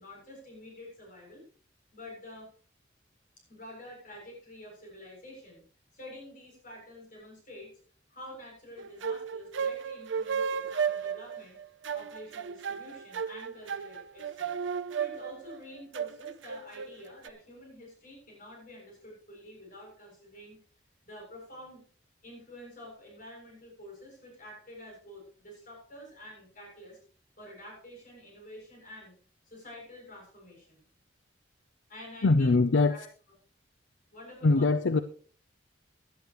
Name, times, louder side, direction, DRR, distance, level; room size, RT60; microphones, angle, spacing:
voice 1, 0.0-1.5 1.9-2.5 3.4-5.6 5.9-7.7 8.1-11.6 11.9-14.6 14.9-20.6 21.0-21.8 22.2-27.0 27.4-29.2 29.5-30.8 31.9-32.6 32.9-33.0 34.1-34.8, left 1 dB, 45° left, -1 dB, 7.3 m, -48 dB
sound 1, 8.8-17.3, right 6 dB, 75° right, 0.6 m, -34 dB
voice 2, 32.2-33.1 34.4-35.0, left 3 dB, 70° left, 11 dB, 0.6 m, -23 dB
17.5 x 11.0 x 3.1 m, 0.43 s
head